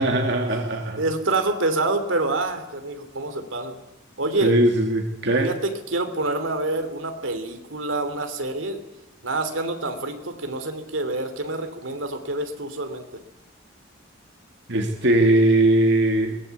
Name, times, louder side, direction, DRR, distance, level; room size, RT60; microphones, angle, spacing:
voice 1, 0.0-1.0 4.4-5.5 14.7-16.4, right 1 dB, 65° right, 3 dB, 2.5 m, -20 dB
voice 2, 1.0-3.8 4.2-4.5 5.4-8.8 9.2-13.0, right 2 dB, 80° right, 7 dB, 3.2 m, -27 dB
22.5 x 19.5 x 8.4 m, 0.92 s
head